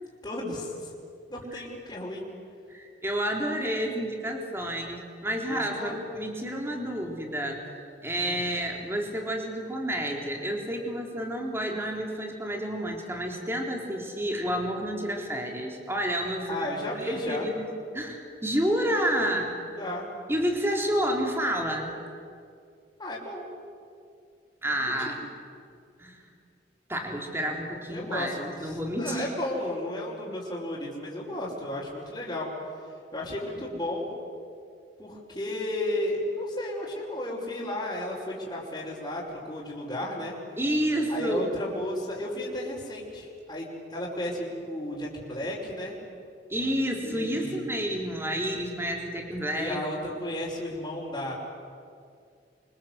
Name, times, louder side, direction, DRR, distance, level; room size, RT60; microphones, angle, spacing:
voice 1, 0.2-0.9 1.3-2.2 5.5-5.9 8.2-8.4 16.5-17.5 19.7-20.0 23.0-23.4 24.7-25.2 27.9-28.3 28.6-32.5 33.1-34.1 35.0-40.3 41.1-45.9 47.0-47.6 49.5-51.3, left 1 dB, 20° left, -7 dB, 5.2 m, -33 dB
voice 2, 2.7-7.6 8.0-16.7 16.9-19.5 20.3-21.9 24.6-25.3 26.0-26.2 26.9-29.3 40.6-41.5 46.5-49.8, equal, 15° right, 1 dB, 3.8 m, -30 dB
29.5 x 25.0 x 8.1 m, 2.3 s
head